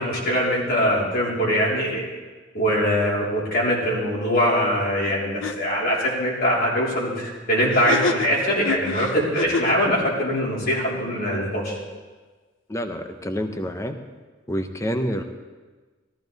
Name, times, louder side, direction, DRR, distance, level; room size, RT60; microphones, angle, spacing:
voice 1, 0.0-2.1 2.5-11.8, equal, 50° left, -4 dB, 3.7 m, -22 dB
sound 1, 5.0-5.1 5.4-5.5 7.7-9.8, left 3 dB, 70° left, 0.7 m, -28 dB
voice 2, 12.7-14.0 14.5-15.2, equal, 15° left, 7 dB, 0.8 m, -27 dB
14.5 x 14.0 x 4.0 m, 1.3 s
head